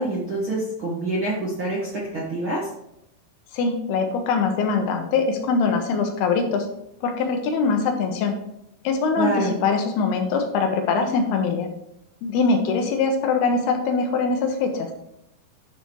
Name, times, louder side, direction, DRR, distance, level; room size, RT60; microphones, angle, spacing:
voice 1, 0.0-2.7 9.2-9.5, right 1 dB, 55° right, -6 dB, 1.4 m, -26 dB
voice 2, 3.5-6.7 7.0-8.4 8.8-11.7 12.2-14.9, left 4 dB, 75° left, 4 dB, 2.8 m, -22 dB
10.5 x 6.7 x 3.2 m, 0.78 s
omnidirectional pair, 4.8 m